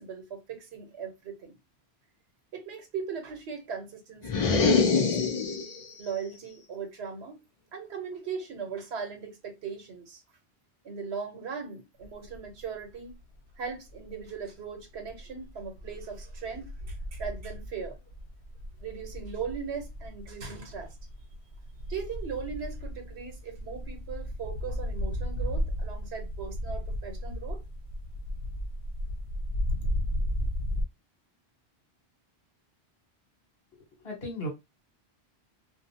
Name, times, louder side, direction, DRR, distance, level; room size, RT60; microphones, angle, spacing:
voice 1, 0.0-1.6 2.5-5.5 6.0-7.4 7.7-10.2 10.8-13.1 13.6-17.9 18.8-21.0 21.9-27.6, right 6 dB, 80° right, 1.1 m, -39 dB
sound 1, 4.2-5.9, left 5 dB, 50° left, 0.4 m, -24 dB
sound 2, 12.0-12.6 13.0-14.4 14.8-30.8, equal, 85° left, 0.9 m, -35 dB
voice 2, 33.7-34.5, equal, 65° left, 1.4 m, -37 dB
2.5 x 2.3 x 2.6 m
omnidirectional pair, 1.1 m